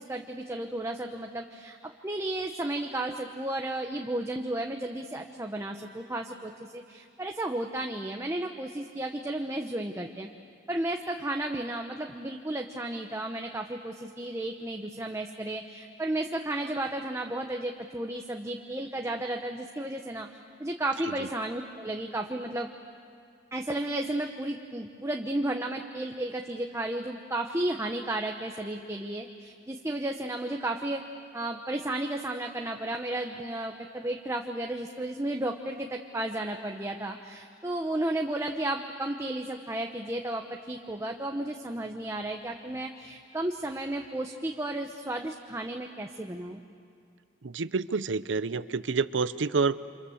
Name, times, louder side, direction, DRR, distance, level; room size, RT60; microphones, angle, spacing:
voice 1, 0.0-10.3 10.7-20.3 20.6-22.7 23.5-31.0 31.3-46.6, right 1 dB, 15° right, 3 dB, 0.9 m, -33 dB
voice 2, 47.4-49.9, right 4 dB, 85° right, 15 dB, 0.6 m, -28 dB
29.5 x 26.0 x 7.2 m, 2.4 s
head